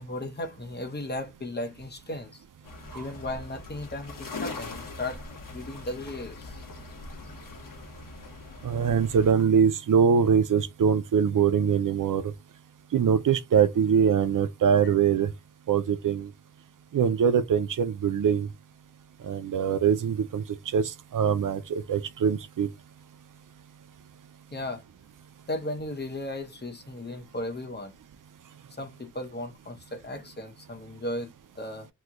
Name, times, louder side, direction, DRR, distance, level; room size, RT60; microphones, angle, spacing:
voice 1, 0.0-2.4 2.9-6.6 14.8-14.9 24.5-24.8 25.5-27.9 28.7-31.9, left 1 dB, 30° left, 0.8 m, -36 dB
sound 1, 2.6-9.3, left 3 dB, 75° left, 1.1 m, -41 dB
voice 2, 8.6-12.3 12.9-15.3 15.7-16.3 16.9-18.5 19.2-20.4 20.7-22.7, right 7 dB, 70° right, 0.5 m, -23 dB
3.1 x 2.2 x 3.7 m
wide cardioid pair, 90°, 33 cm